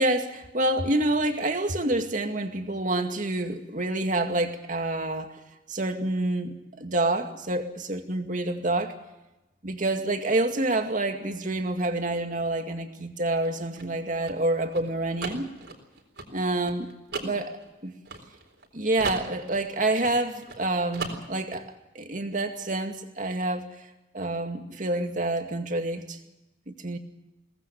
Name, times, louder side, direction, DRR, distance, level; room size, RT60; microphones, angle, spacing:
voice 1, 0.0-5.4 5.7-9.0 9.6-15.5 16.3-16.9 17.2-17.9 18.7-21.7 21.9-23.9 24.1-26.2 26.7-27.0, right 2 dB, 45° right, 5 dB, 2.2 m, -28 dB
sound 1, 13.4-18.7 19.0-20.6 20.9-21.6, right 3 dB, 70° right, 4.0 m, -38 dB
23.0 x 18.5 x 7.1 m, 1.0 s
head